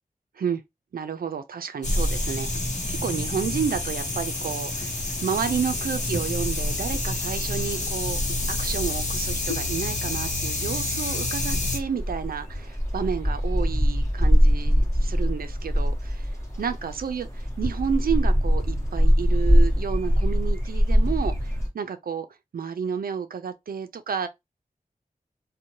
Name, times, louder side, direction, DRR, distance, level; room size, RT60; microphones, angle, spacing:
voice 1, 0.9-8.2 8.5-22.3 22.5-24.3, right 7 dB, 90° right, 0.4 m, -31 dB
sound 1, 1.8-11.8, left 2 dB, 55° left, 0.8 m, -29 dB
sound 2, 1.8-21.7, equal, 20° left, 1.1 m, -25 dB
2.6 x 2.1 x 2.8 m
wide cardioid pair, 80°, 15 cm